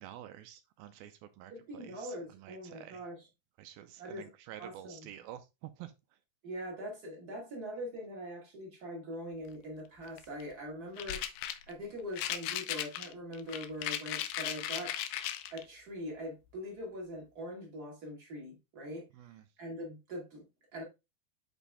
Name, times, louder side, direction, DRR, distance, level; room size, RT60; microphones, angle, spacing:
voice 1, 0.0-3.0 3.6-5.9 19.1-19.4, right 12 dB, 80° right, 2.3 m, -49 dB
voice 2, 1.5-3.3 4.0-4.3 4.6-5.1 6.4-11.2 11.7-15.0 15.5-19.0 19.6-20.4 20.7-20.8, equal, 40° right, 1.5 m, -42 dB
sound 1, 10.0-10.4 11.0-11.7 12.1-15.6, left 11 dB, 80° left, 2.4 m, -37 dB
8.0 x 4.3 x 3.4 m
omnidirectional pair, 4.5 m